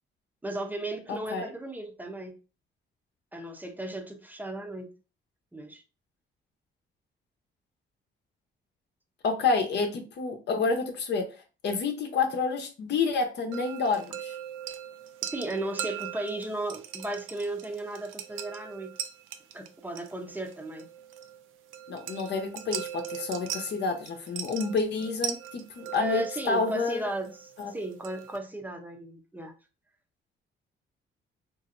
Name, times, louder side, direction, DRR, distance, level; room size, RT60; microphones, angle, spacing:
voice 1, 0.4-2.4 3.3-5.0 5.5-5.8 15.3-19.0 19.5-20.9 26.0-29.5, right 2 dB, 10° right, 0.6 m, -35 dB
voice 2, 1.1-1.5 9.2-11.3 11.6-14.4 21.9-27.1 27.6-27.7, left 4 dB, 60° left, 0.8 m, -29 dB
sound 1, 13.5-28.4, right 10 dB, 85° right, 0.4 m, -40 dB
3.0 x 2.7 x 2.5 m
cardioid pair, 90°, 20 cm